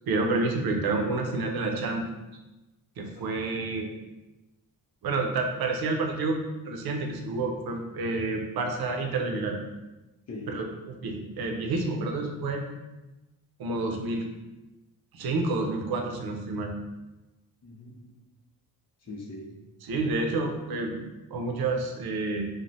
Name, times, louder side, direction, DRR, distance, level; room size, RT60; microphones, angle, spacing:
voice 1, 0.1-2.1 3.0-3.9 5.0-6.4 6.7-9.6 10.5-10.6 11.0-12.7 13.6-14.3 15.1-16.7 19.8-22.5, right 3 dB, 75° right, 2 dB, 0.5 m, -29 dB
voice 2, 10.3-10.8 17.6-18.2 19.0-19.7, left 2 dB, 45° left, -1 dB, 0.5 m, -42 dB
3.0 x 2.0 x 2.6 m, 1.0 s
wide cardioid pair, 170°, 37 cm